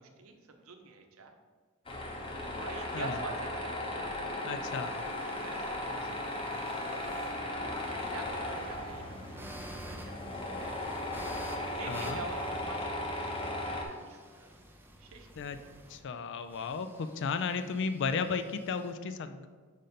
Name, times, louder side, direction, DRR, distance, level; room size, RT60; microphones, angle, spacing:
voice 1, 0.2-1.3 2.3-4.1 5.4-6.9 7.9-9.1 9.8-11.0 11.7-14.5 15.0-15.3, right 3 dB, 70° right, 5 dB, 0.7 m, -46 dB
Tools, 1.9-13.9, left 1 dB, 25° left, 0.7 m, -36 dB
sound 1, 4.0-18.9, right 1 dB, 10° right, 0.5 m, -51 dB
voice 2, 4.5-4.9 11.9-12.2 15.4-15.6 15.9-19.5, left 5 dB, 55° left, 10 dB, 0.4 m, -34 dB
5.1 x 5.1 x 4.2 m, 1.5 s
head